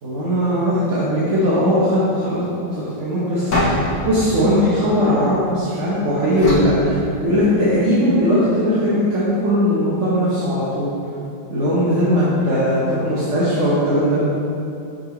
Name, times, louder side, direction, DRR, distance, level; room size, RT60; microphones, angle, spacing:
voice 1, 0.0-2.4 2.7-10.9 11.5-14.2, equal, 50° right, -9 dB, 1.2 m, -19 dB
sound 1, 3.5-5.7 6.4-7.8, left 1 dB, 65° left, 1.9 m, -25 dB
6.5 x 5.5 x 2.9 m, 2.7 s
omnidirectional pair, 1.8 m